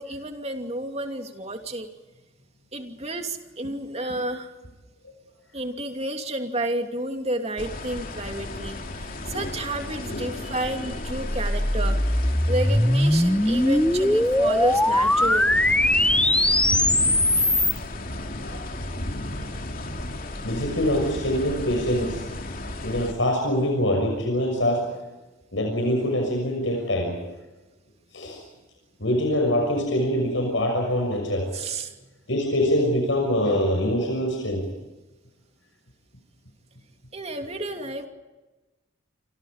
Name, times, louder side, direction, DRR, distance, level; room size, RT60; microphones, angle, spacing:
voice 1, 0.0-1.9 2.7-4.5 5.5-15.6 31.5-32.1 37.1-38.1, right 1 dB, 30° right, 5 dB, 2.7 m, -31 dB
sound 1, 7.6-23.1, left 1 dB, 45° left, 2.9 m, -34 dB
sound 2, 11.0-17.8, left 1 dB, 5° left, 0.8 m, -21 dB
voice 2, 18.4-18.7 20.4-22.2 22.8-24.9 25.5-27.2 28.1-28.4 29.0-31.5 32.3-34.6, equal, 70° left, 2 dB, 6.4 m, -24 dB
29.0 x 26.0 x 5.1 m, 1.1 s
head